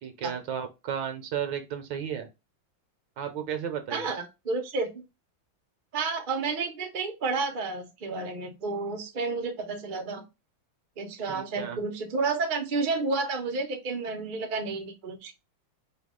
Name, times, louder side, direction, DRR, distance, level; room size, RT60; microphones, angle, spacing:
voice 1, 0.0-2.3 3.2-4.1 11.3-11.8, right 8 dB, 70° right, 7 dB, 1.3 m, -34 dB
voice 2, 3.9-4.9 5.9-10.2 11.0-15.3, right 4 dB, 45° right, 2 dB, 0.6 m, -31 dB
4.7 x 2.3 x 3.6 m, 0.24 s
omnidirectional pair, 2.2 m